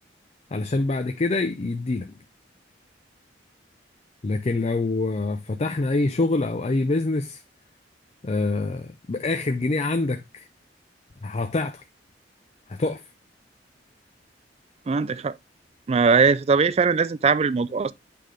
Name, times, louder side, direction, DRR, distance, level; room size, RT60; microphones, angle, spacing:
voice 1, 0.5-2.1 4.2-7.4 8.2-10.5 11.2-11.8 12.7-13.0, left 2 dB, 35° left, 0.5 m, -25 dB
voice 2, 14.9-15.4 15.9-17.9, right 5 dB, 35° right, 0.3 m, -20 dB
8.5 x 3.8 x 3.2 m
head